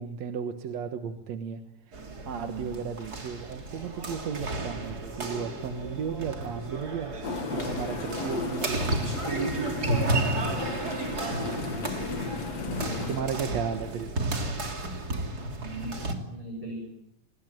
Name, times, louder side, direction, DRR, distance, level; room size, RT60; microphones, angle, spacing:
voice 1, 0.0-1.6 1.9-7.2 7.5-8.9 9.2-10.7 13.1-14.2, right 7 dB, 70° right, 7 dB, 2.6 m, -35 dB
sound 1, 1.9-16.2, right 2 dB, 35° right, 3.2 m, -32 dB
voice 2, 2.2-2.8 12.5-13.6 15.6-16.9, right 2 dB, 10° right, -1 dB, 7.8 m, -40 dB
sound 2, 7.2-13.2, left 4 dB, 60° left, 3.4 m, -35 dB
26.0 x 21.0 x 9.1 m, 0.82 s
omnidirectional pair, 3.4 m